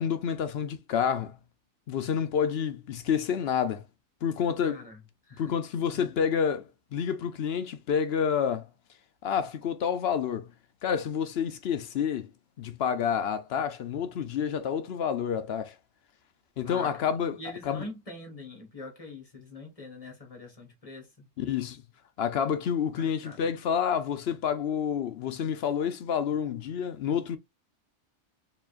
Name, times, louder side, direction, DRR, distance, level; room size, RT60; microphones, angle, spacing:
voice 1, 0.0-1.4 1.9-3.8 4.2-4.8 5.4-8.7 9.2-10.5 10.8-12.3 12.6-15.7 16.6-17.4 17.7-17.8 21.4-21.8 22.2-27.4, left 7 dB, 65° left, 0.8 m, -29 dB
voice 2, 4.6-5.5 5.9-6.2 16.6-21.3 22.9-23.6, left 2 dB, 30° left, 1.4 m, -44 dB
4.7 x 3.1 x 2.4 m
omnidirectional pair, 1.3 m